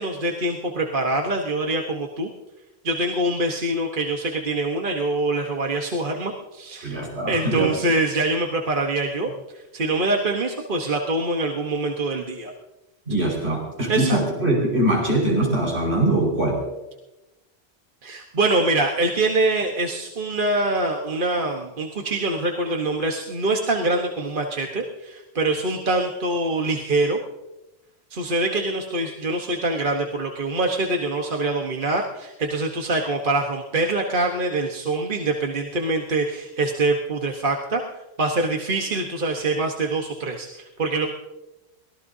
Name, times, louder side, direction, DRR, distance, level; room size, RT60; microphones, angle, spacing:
voice 1, 0.0-2.3 2.8-7.0 7.3-9.3 9.7-12.5 13.9-14.2 18.0-27.2 28.1-37.8 38.2-41.1, right 2 dB, 50° right, 2 dB, 1.4 m, -24 dB
voice 2, 6.8-7.8 13.1-16.6, right 1 dB, 70° right, -2 dB, 5.5 m, -22 dB
24.0 x 17.5 x 2.8 m, 0.98 s
omnidirectional pair, 1.1 m